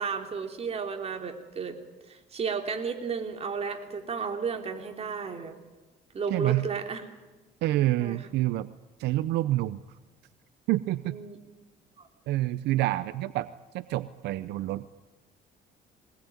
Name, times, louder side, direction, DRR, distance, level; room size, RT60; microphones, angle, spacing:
voice 1, 0.0-1.8 2.1-5.5 6.1-7.0 8.0-8.2 11.0-11.4 12.0-12.1, right 5 dB, 35° right, 4 dB, 3.4 m, -33 dB
voice 2, 6.3-6.7 7.6-8.7 9.0-9.8 10.7-11.1 12.3-13.5 13.7-14.9, right 16 dB, 80° right, 14 dB, 0.7 m, -27 dB
22.0 x 19.5 x 9.5 m, 1.2 s
cardioid pair, 110°, 17 cm